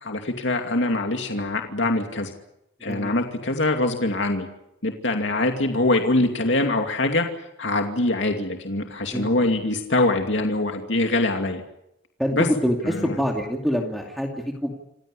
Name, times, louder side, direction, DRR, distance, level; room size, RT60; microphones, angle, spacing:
voice 1, 0.0-2.3 2.8-4.5 4.8-7.3 7.6-11.6 12.3-12.5 12.8-13.2, left 2 dB, 75° left, 4 dB, 2.6 m, -23 dB
voice 2, 9.1-9.5 12.2-12.3 12.6-14.8, equal, ahead, 0 dB, 2.5 m, -26 dB
28.5 x 16.5 x 9.9 m, 0.83 s
head